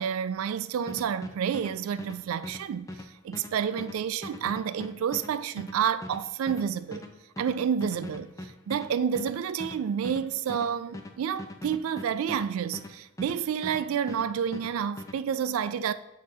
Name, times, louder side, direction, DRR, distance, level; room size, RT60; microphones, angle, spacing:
voice 1, 0.0-2.9 3.2-7.1 7.4-15.9, right 8 dB, 75° right, 0.3 m, -29 dB
sound 1, 0.9-13.8 14.1-15.2, left 1 dB, 15° left, 0.4 m, -41 dB
7.4 x 2.8 x 4.7 m
head